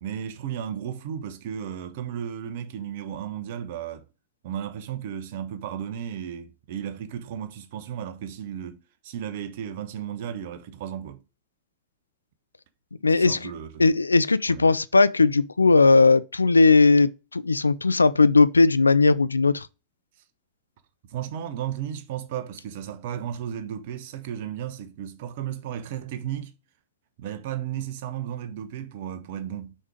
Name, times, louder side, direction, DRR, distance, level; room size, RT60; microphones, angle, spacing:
voice 1, 0.0-4.0 4.4-11.2 13.2-13.8 14.5-14.7 21.1-26.5 27.2-29.8, right 9 dB, 50° right, 1.1 m, -34 dB
voice 2, 13.0-13.5 13.8-19.7, left 3 dB, 80° left, 0.4 m, -18 dB
6.3 x 5.5 x 5.0 m
figure-of-eight pair, 90°, 0 cm